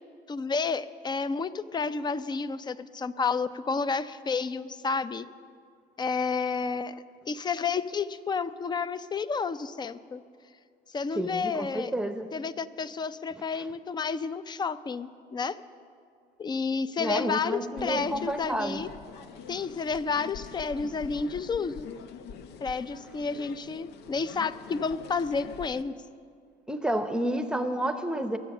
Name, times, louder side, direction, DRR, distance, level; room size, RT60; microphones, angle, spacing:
voice 1, 0.3-5.3 6.0-7.0 7.3-10.2 10.9-11.9 12.3-15.6 16.4-18.9 19.5-21.9 22.6-25.9, left 5 dB, 25° left, 15 dB, 0.5 m, -30 dB
voice 2, 11.1-12.3 17.0-18.8 26.7-28.4, right 1 dB, 5° right, 9 dB, 0.8 m, -30 dB
sound 1, 17.8-25.8, left 7 dB, 85° left, 0.7 m, -44 dB
22.0 x 7.7 x 6.6 m, 2.2 s
cardioid pair, 110°, 17 cm